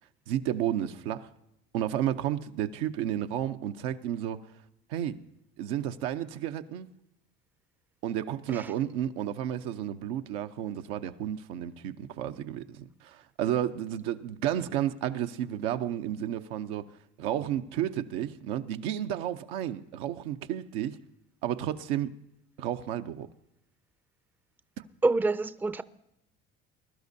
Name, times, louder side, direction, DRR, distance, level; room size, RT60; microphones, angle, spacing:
voice 1, 0.3-1.3 1.7-4.5 4.9-5.2 5.6-6.9 8.0-16.9 17.2-21.0 21.4-22.1 22.6-23.3 24.8-24.9, right 11 dB, 85° right, 0.7 m, -32 dB
voice 2, 25.0-25.8, right 3 dB, 5° right, 0.4 m, -26 dB
21.5 x 12.0 x 2.7 m
supercardioid pair, 75°, 29 cm